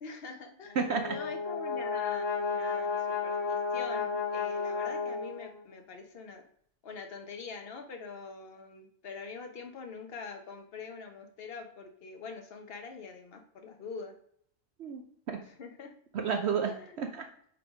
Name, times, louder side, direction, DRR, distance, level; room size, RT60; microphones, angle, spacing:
voice 1, 0.0-0.8 1.1-3.0 3.2-6.4 6.8-14.1 15.6-15.9 16.7-16.9, left 4 dB, 50° left, 5 dB, 1.1 m, -44 dB
Brass instrument, 0.7-5.7, left 5 dB, 85° left, 2.9 m, -33 dB
voice 2, 0.8-1.2 14.8-15.4 16.1-17.2, right 6 dB, 65° right, 4 dB, 0.9 m, -31 dB
5.7 x 4.0 x 4.9 m, 0.65 s
omnidirectional pair, 1.3 m